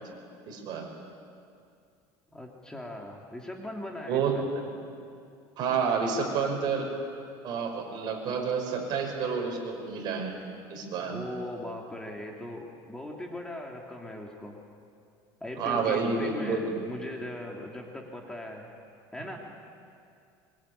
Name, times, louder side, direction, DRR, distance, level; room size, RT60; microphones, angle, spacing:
voice 1, 0.5-0.8 4.1-4.7 5.6-6.9 7.4-10.3 10.7-11.2 15.6-16.7, right 5 dB, 50° right, 2 dB, 6.0 m, -29 dB
voice 2, 2.3-4.5 11.1-14.6 15.4-18.7 19.1-19.4, left 1 dB, 5° left, 0 dB, 2.6 m, -39 dB
24.0 x 23.5 x 9.9 m, 2.4 s
cardioid pair, 145°, 10 cm